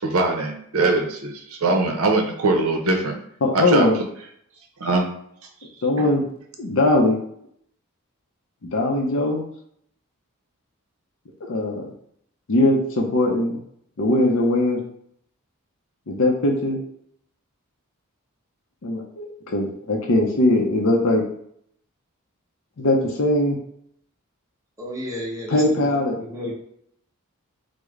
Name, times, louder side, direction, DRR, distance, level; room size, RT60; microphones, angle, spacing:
voice 1, 0.0-3.2 3.5-3.9 4.8-5.1 6.0-6.1, right 2 dB, 70° right, 3 dB, 0.6 m, -22 dB
voice 2, 3.4-4.0 5.8-6.3 6.6-7.2 8.7-9.4 11.4-11.9 12.5-13.6 14.0-14.8 16.1-16.8 18.8-21.2 22.8-23.6 25.5-26.2 26.4-26.5, left 1 dB, 60° left, 1 dB, 0.5 m, -20 dB
voice 3, 24.8-26.0 26.3-26.5, equal, 15° right, -5 dB, 0.8 m, -32 dB
3.1 x 2.0 x 3.6 m, 0.67 s
head